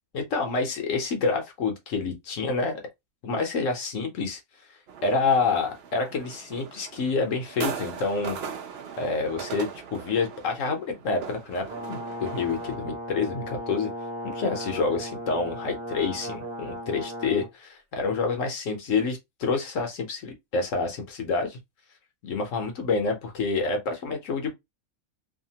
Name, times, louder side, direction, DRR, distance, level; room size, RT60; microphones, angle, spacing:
voice 1, 0.1-2.8 3.2-4.4 5.0-8.4 9.0-13.9 14.2-21.6 22.2-24.5, left 4 dB, 65° left, 1.0 m, -28 dB
sound 1, 4.9-12.8, right 6 dB, 60° right, 0.7 m, -39 dB
Brass instrument, 11.7-17.5, equal, 40° right, 1.0 m, -36 dB
2.7 x 2.3 x 2.7 m
omnidirectional pair, 1.5 m